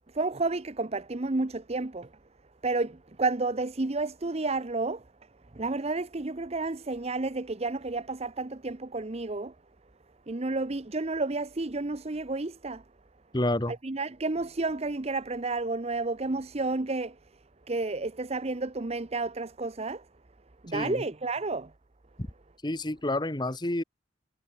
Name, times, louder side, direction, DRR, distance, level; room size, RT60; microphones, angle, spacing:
voice 1, 0.1-2.1 2.6-5.0 5.5-9.5 10.3-12.8 13.7-17.2 17.7-20.1 20.6-21.7, right 3 dB, 35° right, 0.8 m, -31 dB
voice 2, 13.3-13.7 20.7-21.0 22.6-23.8, left 1 dB, 25° left, 1.5 m, -29 dB
head